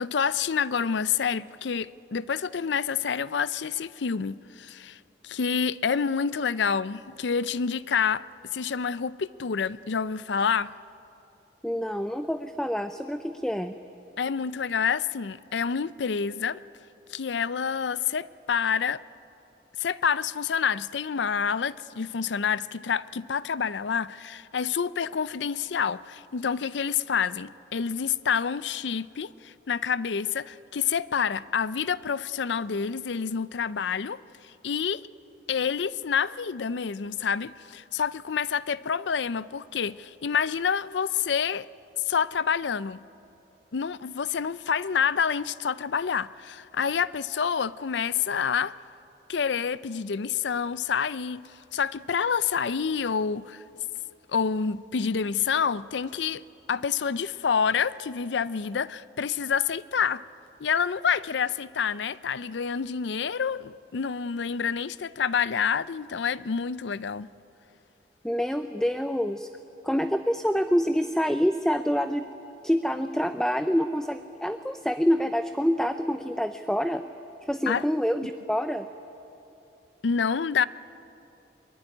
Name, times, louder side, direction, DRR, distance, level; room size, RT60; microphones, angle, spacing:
voice 1, 0.0-8.2 8.5-10.7 14.2-16.6 17.1-19.0 19.8-35.0 35.5-41.7 42.1-43.0 43.7-48.7 49.3-53.6 54.3-56.4 56.7-60.2 60.6-67.3 77.7-77.8 80.0-80.7, left 6 dB, 85° left, 0.5 m, -28 dB
voice 2, 11.6-13.8 68.2-69.5 69.8-72.3 72.6-77.0 77.4-78.9, equal, 5° left, 0.5 m, -26 dB
22.5 x 22.5 x 9.7 m
head